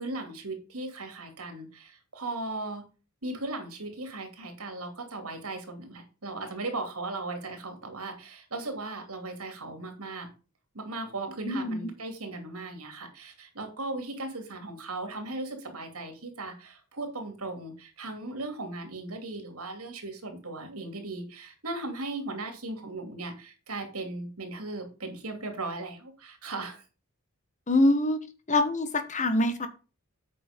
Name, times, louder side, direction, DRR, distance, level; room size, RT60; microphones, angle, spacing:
voice 1, 0.0-2.8 3.2-10.3 10.7-26.8, right 2 dB, 80° right, 2.8 m, -37 dB
voice 2, 11.4-11.9 27.7-28.2 28.5-29.7, left 1 dB, 35° left, 1.3 m, -24 dB
8.6 x 5.9 x 5.2 m
head